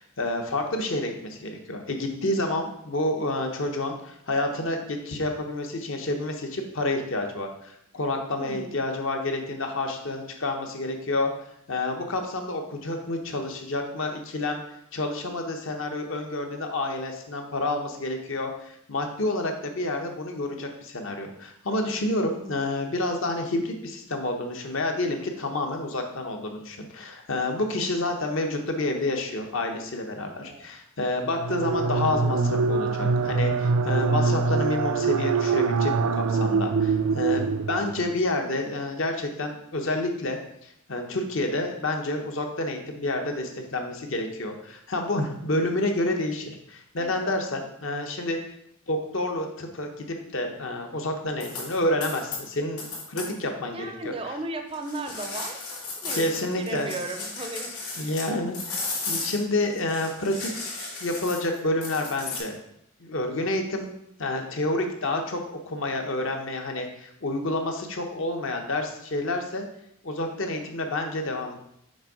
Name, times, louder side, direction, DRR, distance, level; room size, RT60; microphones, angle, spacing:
voice 1, 0.0-11.3 11.7-14.6 14.9-48.4 48.9-50.1 50.3-53.9 56.1-56.9 58.0-58.8 59.1-60.7 61.0-62.6 63.0-63.9 64.2-69.6 70.0-71.5, left 2 dB, 60° left, 4 dB, 0.9 m, -29 dB
voice 2, 8.4-8.7 22.4-22.6 30.2-30.7 47.0-47.3 53.7-57.7, right 2 dB, 25° right, 5 dB, 0.5 m, -36 dB
sound 1, 31.2-38.2, right 4 dB, 80° right, 0.4 m, -24 dB
sound 2, 51.4-51.8 52.0-52.4 52.8-53.3 54.7-58.3 58.5-62.4, left 3 dB, 85° left, 2.5 m, -34 dB
6.5 x 3.6 x 4.8 m, 0.75 s
head